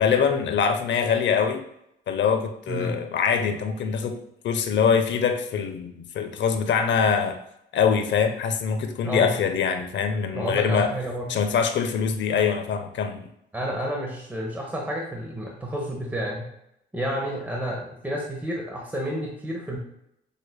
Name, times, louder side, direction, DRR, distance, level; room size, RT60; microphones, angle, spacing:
voice 1, 0.0-1.6 2.1-4.2 4.4-7.4 7.7-10.9 11.3-13.2, left 6 dB, 65° left, 7 dB, 0.6 m, -23 dB
voice 2, 2.7-3.0 9.0-9.3 10.3-11.3 13.5-16.5 16.9-19.8, equal, 10° right, -1 dB, 1.0 m, -30 dB
6.5 x 3.3 x 2.2 m, 0.79 s
cardioid pair, 90°, 20 cm